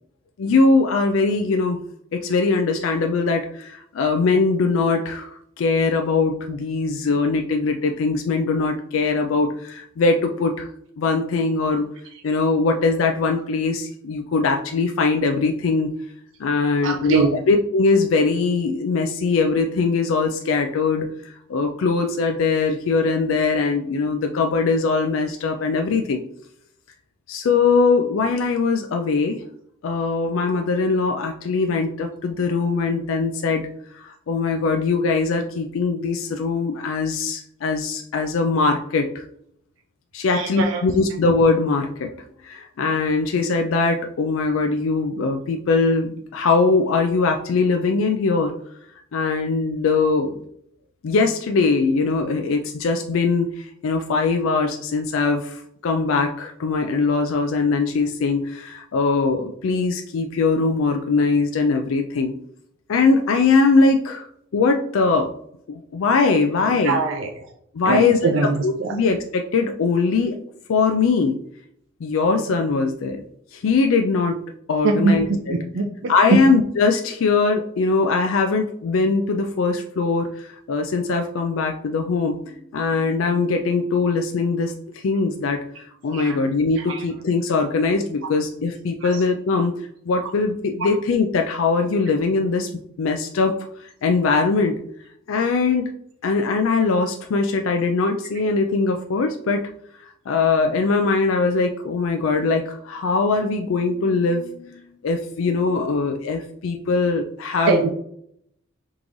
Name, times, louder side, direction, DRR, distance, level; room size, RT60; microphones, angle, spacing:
voice 1, 0.4-1.8 2.1-10.7 11.0-11.8 12.2-15.9 16.4-21.1 21.5-26.2 27.3-29.4 29.8-33.7 33.9-39.2 40.1-42.1 42.4-48.5 49.1-50.3 51.0-62.3 62.9-64.3 64.5-65.3 65.7-67.0 67.7-70.4 70.7-71.4 72.0-73.2 73.5-74.4 74.7-75.5 76.1-82.4 82.7-85.6 86.0-89.7 90.1-92.7 93.0-94.7 95.3-95.8 96.2-99.7 100.3-107.9, left 4 dB, 75° left, 4 dB, 0.4 m, -21 dB
voice 2, 16.8-17.3 40.3-40.8 66.8-67.3 67.9-68.9 74.8-76.4 86.1-86.4 86.9-87.0 89.0-89.2 107.7-107.9, right 3 dB, 65° right, 1 dB, 0.5 m, -22 dB
3.7 x 3.1 x 3.8 m, 0.69 s
head